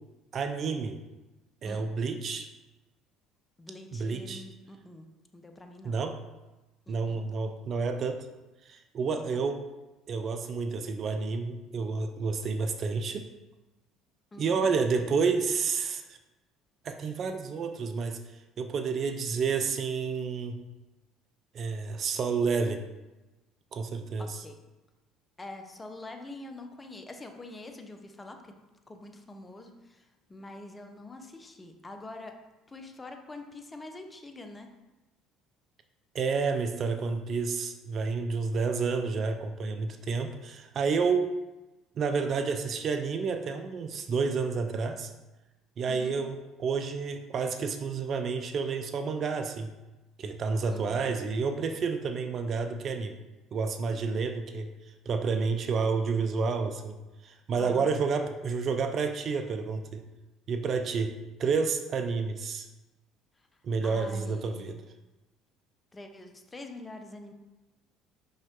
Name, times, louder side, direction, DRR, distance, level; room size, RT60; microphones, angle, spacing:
voice 1, 0.3-1.0 1.6-2.5 3.9-4.4 5.8-6.1 6.9-8.3 8.7-9.6 10.1-13.3 14.4-16.0 16.8-18.2 18.6-20.6 21.5-22.8 23.7-24.4 36.1-41.3 42.0-45.1 45.8-49.7 50.2-53.2 53.5-54.7 55.1-57.0 57.2-60.0 60.5-61.1 61.4-62.7 63.6-64.8, right 5 dB, 50° right, 7 dB, 0.7 m, -30 dB
voice 2, 3.6-5.1 5.3-6.0 6.9-7.3 9.2-9.4 14.3-14.7 24.2-24.6 25.4-28.5 28.9-32.3 32.7-34.7 45.9-46.2 50.7-51.1 57.6-57.9 63.8-64.7 65.9-67.3, left 2 dB, 20° left, 5 dB, 1.0 m, -45 dB
5.8 x 5.5 x 3.7 m, 1.1 s
hypercardioid pair, 70°, 0 cm